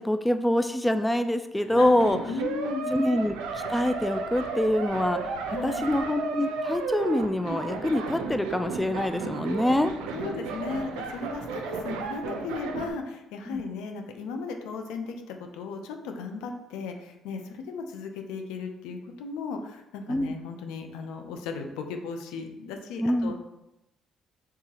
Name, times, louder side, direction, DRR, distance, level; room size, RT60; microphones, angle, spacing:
voice 1, 0.0-2.2 2.9-5.2 5.6-9.9 13.5-13.6 20.1-20.3 23.0-23.3, left 1 dB, 10° left, 9 dB, 0.3 m, -25 dB
voice 2, 1.6-2.9 5.5-5.9 10.1-23.4, left 4 dB, 85° left, 5 dB, 0.5 m, -36 dB
sound 1, 1.7-12.9, right 4 dB, 90° right, 0.5 m, -33 dB
4.7 x 3.5 x 2.9 m, 0.93 s
supercardioid pair, 70°, 0 cm